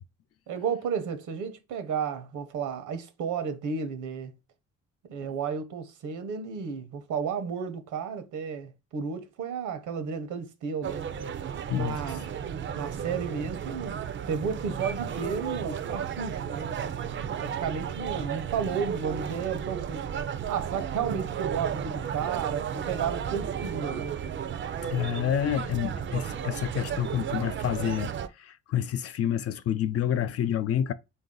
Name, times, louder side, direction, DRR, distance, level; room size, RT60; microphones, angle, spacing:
voice 1, 0.5-4.3 5.1-11.1 11.7-12.3 12.7-16.8 17.4-20.0 20.5-24.2, right 6 dB, 80° right, 0.8 m, -33 dB
sound 1, 10.8-28.3, right 8 dB, 40° right, 0.4 m, -34 dB
voice 2, 11.7-12.0 24.9-28.1 28.4-30.9, left 10 dB, 55° left, 0.5 m, -28 dB
3.9 x 2.6 x 3.8 m
cardioid pair, 90°, 30 cm